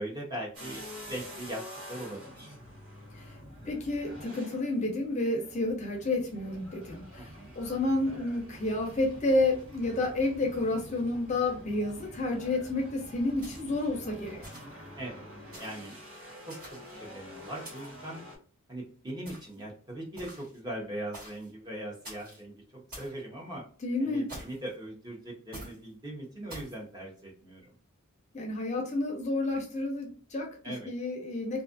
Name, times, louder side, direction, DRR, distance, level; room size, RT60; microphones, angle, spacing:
voice 1, 0.0-2.5 7.2-7.5 15.0-15.2 15.6-16.0 16.5-18.2 18.7-23.6 24.0-27.7 30.6-30.9, right 1 dB, 20° right, -2 dB, 0.7 m, -40 dB
sound 1, 0.5-18.4, equal, 90° right, 1.2 m, -47 dB
voice 2, 3.6-7.3 7.6-14.6 23.8-24.3 28.3-30.5 30.8-31.6, left 2 dB, 30° left, 1 dB, 0.5 m, -30 dB
sound 2, 13.4-13.9 14.4-14.9 15.5-15.9 16.5-17.1 17.6-18.1 19.3-19.6 20.2-20.6 21.1-21.5 22.0-22.4 22.9-23.2 24.3-24.7 25.5-25.8 26.5-26.8, right 1 dB, 40° right, 1.4 m, -47 dB
2.5 x 2.4 x 2.4 m, 0.42 s
head